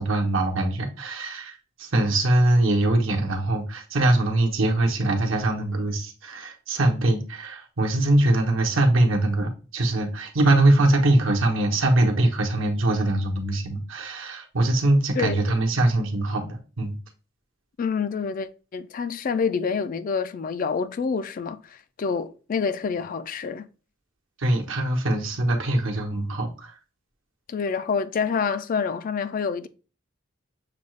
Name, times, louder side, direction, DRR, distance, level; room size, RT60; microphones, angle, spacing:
voice 1, 0.0-17.0 24.4-26.7, right 1 dB, 70° right, 1.0 m, -22 dB
voice 2, 15.2-15.5 17.8-23.7 27.5-29.7, left 5 dB, 40° left, 0.3 m, -27 dB
6.7 x 2.3 x 3.1 m
head